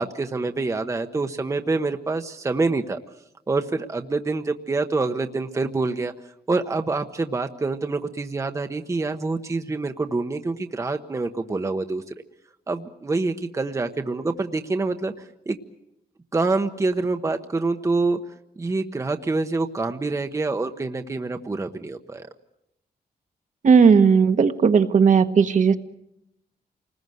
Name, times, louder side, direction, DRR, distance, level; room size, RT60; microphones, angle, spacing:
voice 1, 0.0-3.0 3.5-6.1 6.5-12.0 12.7-15.6 16.3-18.2 18.6-22.3, right 3 dB, 20° right, 6 dB, 0.9 m, -26 dB
voice 2, 23.6-25.8, right 6 dB, 50° right, 8 dB, 1.3 m, -16 dB
29.0 x 20.0 x 7.9 m, 0.83 s
wide cardioid pair, 165°, 16 cm